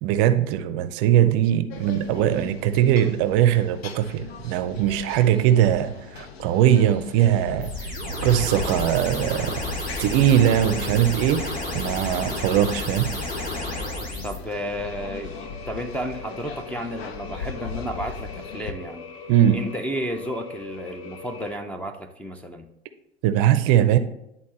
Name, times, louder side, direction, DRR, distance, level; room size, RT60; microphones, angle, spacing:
voice 1, 0.0-7.9 8.2-9.6 10.0-13.1 19.3-19.6 23.2-24.0, right 11 dB, 45° right, 11 dB, 0.5 m, -20 dB
sound 1, 1.7-18.7, left 5 dB, 75° left, 0.7 m, -39 dB
sound 2, 7.6-14.4, left 1 dB, 25° left, 1.9 m, -31 dB
voice 2, 14.2-19.1 19.5-22.7, equal, 5° left, 0 dB, 0.5 m, -32 dB
sound 3, 14.7-21.6, left 5 dB, 45° left, 0.9 m, -41 dB
10.5 x 3.8 x 3.0 m, 0.83 s
hypercardioid pair, 85°, 31 cm